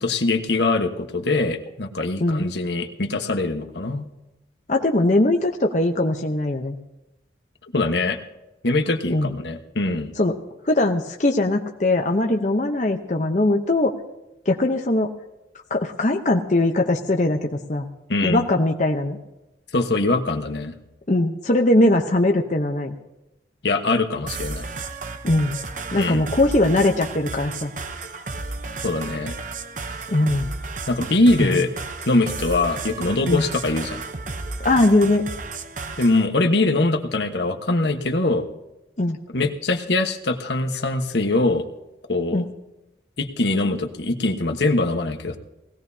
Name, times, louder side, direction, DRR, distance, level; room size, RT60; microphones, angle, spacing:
voice 1, 0.0-4.1 7.7-8.2 8.6-10.1 18.1-18.5 19.7-20.7 23.6-24.6 25.9-26.2 28.8-29.3 30.9-31.7 32.1-34.0 36.0-38.4 39.3-41.6 42.1-42.4 43.2-45.4, left 2 dB, 75° left, 5 dB, 1.3 m, -22 dB
voice 2, 4.7-6.8 9.1-9.3 10.2-10.3 10.6-14.0 14.5-15.1 15.7-17.9 18.2-19.2 21.1-22.9 25.2-25.6 25.9-27.7 30.1-30.5 31.4-31.6 33.2-33.4 34.6-35.3 39.0-39.2 42.3-42.4, left 2 dB, 40° left, 2 dB, 0.9 m, -20 dB
sound 1, 24.3-36.3, right 3 dB, 45° right, 0.9 m, -33 dB
20.0 x 17.0 x 2.8 m, 0.97 s
head